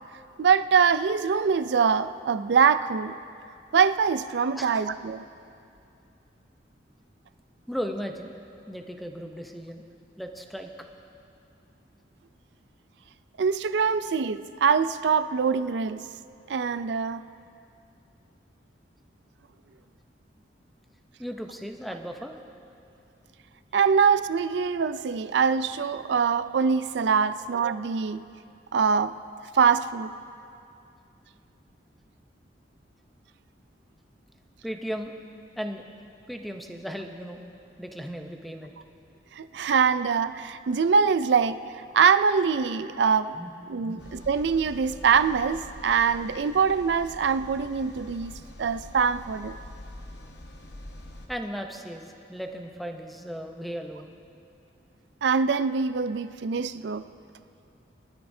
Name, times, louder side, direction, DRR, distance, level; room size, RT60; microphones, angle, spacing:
voice 1, 0.4-3.2 3.7-5.2 13.4-16.0 16.5-17.2 23.7-28.2 28.7-29.1 29.5-30.1 39.4-41.6 41.9-43.4 43.7-49.6 55.2-57.0, right 6 dB, 70° right, 0.4 m, -23 dB
voice 2, 7.7-8.3 8.7-9.9 10.2-10.7 21.2-22.3 34.6-35.2 35.6-35.9 36.3-37.4 37.8-38.8 43.3-43.5 43.8-44.1 51.3-54.2, equal, ahead, 0.7 m, -36 dB
sound 1, 44.0-51.3, left 1 dB, 65° left, 1.0 m, -45 dB
22.5 x 12.5 x 2.7 m
head